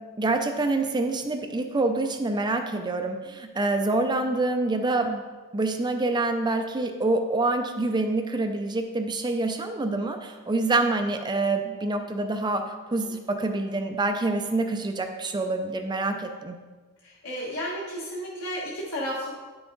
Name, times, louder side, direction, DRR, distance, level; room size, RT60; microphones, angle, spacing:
voice 1, 0.2-5.2 5.5-16.6, right 2 dB, 20° right, 5 dB, 0.4 m, -26 dB
voice 2, 17.0-19.3, equal, 75° left, -6 dB, 1.4 m, -33 dB
10.0 x 5.9 x 3.9 m, 1.4 s
head